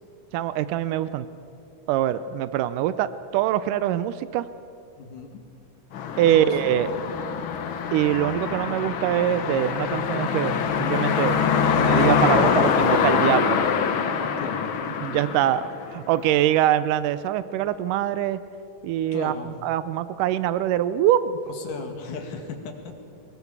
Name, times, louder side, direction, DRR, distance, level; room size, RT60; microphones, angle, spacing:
voice 1, 0.3-1.3 1.9-4.5 6.2-6.9 7.9-13.6 15.0-18.4 18.8-21.4, right 12 dB, 90° right, 14 dB, 2.3 m, -24 dB
voice 2, 5.0-5.4 6.2-6.5 14.4-14.7 19.1-19.5 21.5-22.9, left 4 dB, 80° left, 4 dB, 3.8 m, -36 dB
sound 1, 5.9-16.2, left 6 dB, 60° left, 1.3 m, -24 dB
24.0 x 21.0 x 7.2 m, 2.5 s
omnidirectional pair, 3.6 m